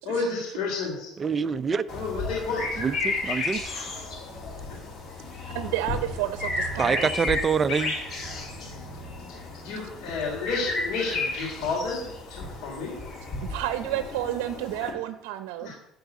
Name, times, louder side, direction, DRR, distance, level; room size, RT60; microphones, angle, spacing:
voice 1, 0.0-1.1 1.9-2.8 3.6-4.1 4.7-4.8 9.3-12.0 12.3-13.0 15.6-15.7, left 4 dB, 75° left, -3 dB, 3.6 m, -31 dB
voice 2, 1.2-1.8 2.8-3.7 6.8-7.9, right 5 dB, 25° right, 12 dB, 0.6 m, -25 dB
sound 1, 1.9-14.9, left 3 dB, 45° left, 3.2 m, -33 dB
voice 3, 5.5-7.1 13.5-15.7, right 13 dB, 90° right, 9 dB, 0.7 m, -31 dB
11.5 x 4.7 x 8.2 m, 0.81 s
cardioid pair, 125°, 0 cm